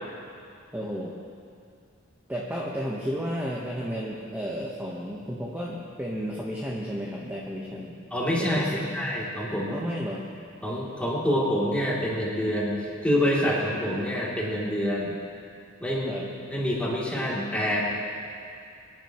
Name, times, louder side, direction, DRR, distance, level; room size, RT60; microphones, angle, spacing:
voice 1, 0.7-1.1 2.3-8.0 8.4-9.0 9.7-10.3 16.1-16.3, equal, 10° right, -4 dB, 1.1 m, -32 dB
voice 2, 8.1-9.8 10.6-15.1 15.8-16.1 16.5-17.8, equal, 5° left, -7 dB, 2.8 m, -26 dB
25.0 x 10.5 x 3.0 m, 2.4 s
head